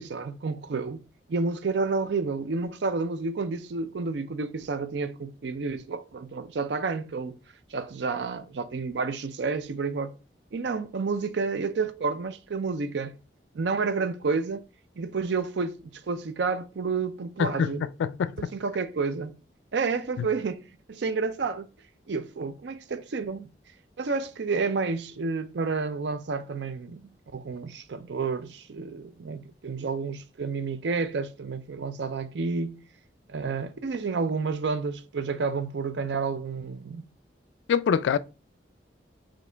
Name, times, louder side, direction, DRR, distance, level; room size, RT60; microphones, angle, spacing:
voice 1, 0.0-7.4 7.7-10.1 10.5-13.2 13.5-14.6 15.0-17.8 18.4-19.4 19.7-20.6 20.9-21.7 22.1-23.5 24.0-32.8 33.3-37.1, right 4 dB, 75° right, 0.5 m, -30 dB
voice 2, 17.4-18.5 20.2-20.3 37.7-38.2, left 7 dB, 80° left, 0.3 m, -25 dB
5.0 x 2.9 x 3.3 m
head